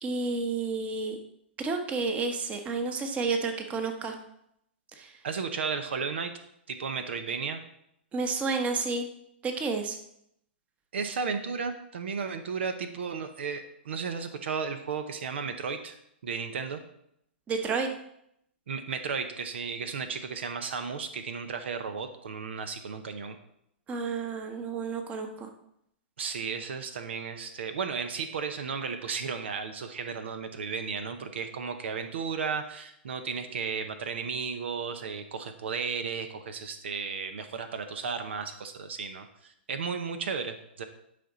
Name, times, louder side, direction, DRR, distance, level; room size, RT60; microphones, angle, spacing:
voice 1, 0.0-1.2 1.6-4.2 5.0-5.1 8.1-9.1 9.4-10.0 17.5-17.9 23.9-25.5, right 4 dB, 20° right, 5 dB, 1.1 m, -30 dB
voice 2, 5.2-6.3 6.7-7.6 10.9-15.9 16.2-16.8 18.7-23.4 26.2-40.8, right 5 dB, 75° right, 8 dB, 0.9 m, -34 dB
11.0 x 5.2 x 3.9 m, 0.75 s
hypercardioid pair, 130°, 6 cm